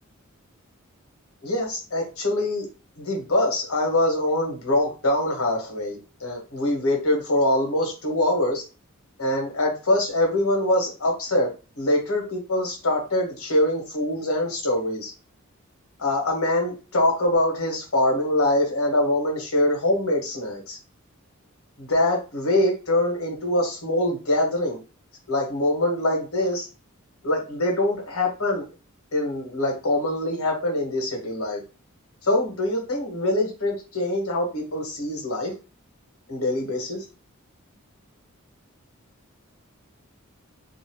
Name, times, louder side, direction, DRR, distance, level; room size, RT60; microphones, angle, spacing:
voice 1, 1.4-2.7 3.0-8.6 9.2-11.5 11.8-15.1 16.0-20.8 21.8-24.8 25.3-26.7 27.2-28.7 29.1-31.6 32.2-35.5 36.3-37.0, left 1 dB, 85° left, 0 dB, 1.3 m, -24 dB
2.7 x 2.5 x 2.9 m, 0.32 s
head